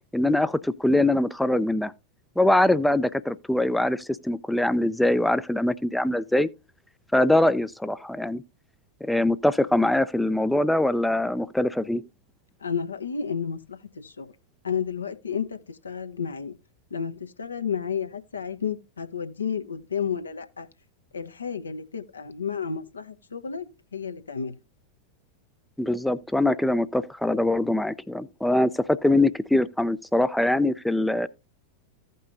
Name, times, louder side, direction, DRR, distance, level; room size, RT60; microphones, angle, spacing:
voice 1, 0.1-1.9 2.4-6.5 7.1-8.4 9.0-12.0 25.8-31.3, left 1 dB, 5° left, 0.4 m, -23 dB
voice 2, 12.6-14.3 14.6-16.6 16.9-20.7 21.1-23.7 23.9-24.5, left 7 dB, 75° left, 0.9 m, -31 dB
15.5 x 5.5 x 2.5 m
figure-of-eight pair, 90°, 0 cm